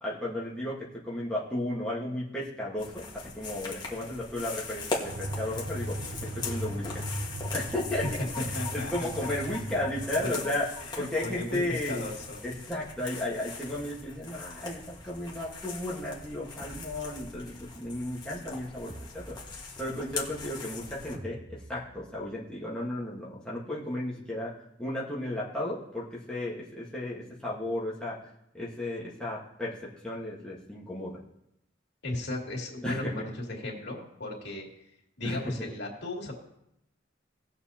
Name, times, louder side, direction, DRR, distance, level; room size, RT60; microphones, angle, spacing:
voice 1, 0.0-7.0 7.5-10.7 11.0-12.1 12.4-19.5 19.8-24.5 24.8-28.3 28.5-31.2 32.8-33.1 35.2-35.4, left 1 dB, 5° left, -7 dB, 1.5 m, -34 dB
sound 1, 2.8-21.2, left 4 dB, 20° left, 1.6 m, -40 dB
sound 2, 5.1-10.2, right 1 dB, 90° right, 0.9 m, -37 dB
voice 2, 8.5-9.5 10.2-10.4 10.9-12.4 32.0-34.7 35.2-36.3, left 2 dB, 60° left, -2 dB, 2.6 m, -36 dB
sound 3, 16.6-17.7 18.9-20.1 21.1-22.4, right 1 dB, 55° right, 3.4 m, -48 dB
18.5 x 6.9 x 2.9 m, 0.80 s
head